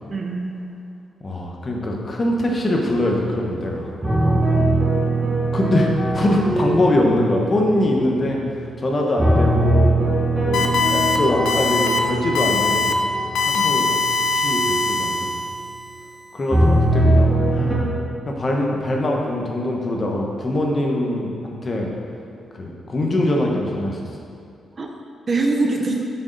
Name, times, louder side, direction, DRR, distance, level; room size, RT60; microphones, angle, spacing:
voice 1, 0.1-0.5 4.2-4.7 13.5-13.8 24.8-24.9 25.3-26.1, right 3 dB, 35° right, 2 dB, 0.6 m, -24 dB
voice 2, 1.2-3.9 5.5-8.4 8.8-9.9 10.4-13.0 13.4-13.9 14.3-15.4 16.3-18.0 18.3-21.9 22.5-24.0, left 1 dB, 30° left, 0 dB, 1.0 m, -23 dB
sound 1, 2.9-3.6 4.0-8.5 9.2-14.8 16.5-17.7, right 1 dB, 15° right, 1.9 m, -21 dB
sound 2, 10.5-11.2 11.5-12.0 12.4-12.9 13.4-15.7, left 4 dB, 75° left, 0.7 m, -21 dB
7.0 x 6.4 x 3.9 m, 2.4 s
cardioid pair, 125°, 0 cm